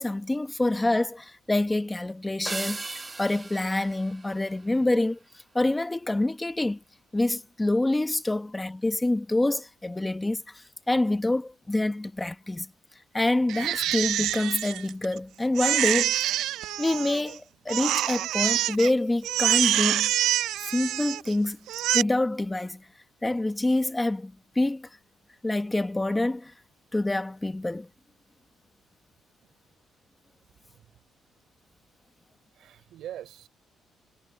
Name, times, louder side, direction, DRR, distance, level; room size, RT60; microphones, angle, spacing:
voice 1, 0.0-5.2 5.5-6.8 7.1-12.7 13.1-16.3 16.8-20.1 20.6-21.6 21.9-22.8 23.2-24.9 25.4-26.5 26.9-27.9, left 2 dB, 10° left, 1.0 m, -26 dB
sound 1, 2.4-5.1, right 3 dB, 20° right, 0.5 m, -38 dB
Crying sobbing, 13.5-15.2 15.6-17.3 17.7-18.9 19.2-21.3 21.7-22.0, right 13 dB, 85° right, 0.3 m, -26 dB
voice 2, 30.7-31.0 32.5-33.5, right 11 dB, 70° right, 4.9 m, -43 dB
cardioid pair, 150°, 0 cm